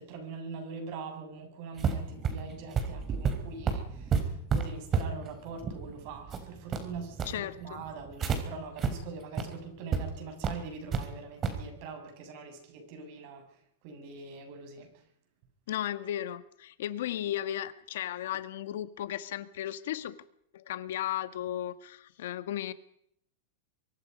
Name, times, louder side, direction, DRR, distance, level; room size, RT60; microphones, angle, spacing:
voice 1, 0.0-14.9, right 4 dB, 50° right, 5 dB, 7.0 m, -43 dB
sound 1, 1.8-8.4 8.8-8.9 9.3-9.4 9.9-10.0 10.4-11.0 11.4-11.6, right 6 dB, 25° right, 3.6 m, -31 dB
voice 2, 7.2-7.8 15.7-20.2 20.5-22.7, left 12 dB, 75° left, 12 dB, 1.6 m, -35 dB
24.5 x 23.0 x 5.4 m, 0.70 s
supercardioid pair, 145°, 0 cm